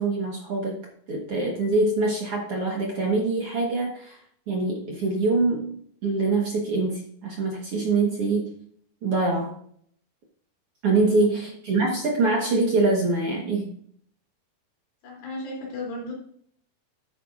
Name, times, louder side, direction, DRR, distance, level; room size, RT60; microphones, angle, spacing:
voice 1, 0.0-4.2 4.5-8.5 9.0-9.5 10.8-13.7, right 3 dB, 50° right, -1 dB, 1.8 m, -24 dB
voice 2, 11.2-11.5 15.0-16.1, left 2 dB, 85° left, -3 dB, 5.2 m, -35 dB
11.5 x 9.1 x 2.6 m, 0.62 s
omnidirectional pair, 4.3 m